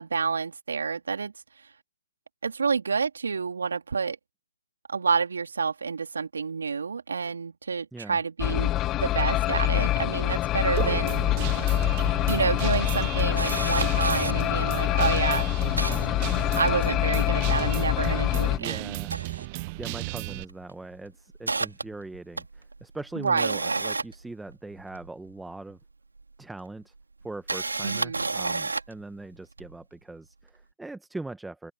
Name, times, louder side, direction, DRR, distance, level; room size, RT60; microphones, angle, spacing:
voice 1, 0.0-1.3 2.4-4.2 4.9-11.4 12.3-15.5 16.6-19.0 23.1-23.6 27.8-28.3, right 5 dB, 70° right, 2.8 m, -29 dB
sound 1, 8.4-18.6, left 15 dB, 20° left, 0.8 m, -25 dB
Guitar, 10.8-20.4, right 24 dB, 30° right, 0.5 m, -35 dB
Camera, 11.7-11.8 12.1-12.2 12.7-14.3 15.0-15.1 15.3-16.9 17.3-18.5 18.9-20.1 20.4-20.6 21.0-25.1 26.2-26.3 27.2-29.0 29.6-29.7, right 3 dB, 85° right, 3.2 m, -32 dB
voice 2, 18.6-19.1 19.5-25.8 26.4-26.9 27.2-31.7, right 2 dB, 5° right, 1.2 m, -41 dB
open air
figure-of-eight pair, 140°, 0 cm